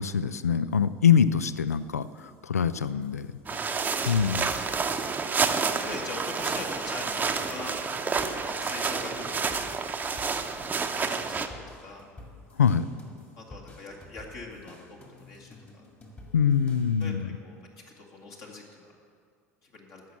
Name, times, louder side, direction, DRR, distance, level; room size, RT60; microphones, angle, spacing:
voice 1, 0.0-3.3 4.1-4.5 12.6-12.9 16.3-17.3, left 7 dB, 80° left, 15 dB, 0.3 m, -24 dB
sound 1, 0.7-2.4 2.7-5.3 5.7-17.1, left 2 dB, 25° left, 2.0 m, -51 dB
voice 2, 3.5-4.4 5.7-7.8 8.5-9.6 10.9-12.0 13.4-15.6 17.0-17.6 17.9-18.9 19.6-20.0, left 3 dB, 45° left, 0 dB, 1.8 m, -42 dB
sound 2, 3.5-11.5, right 5 dB, 20° right, 0.8 m, -29 dB
15.0 x 6.2 x 7.3 m, 2.2 s
figure-of-eight pair, 70°, 8 cm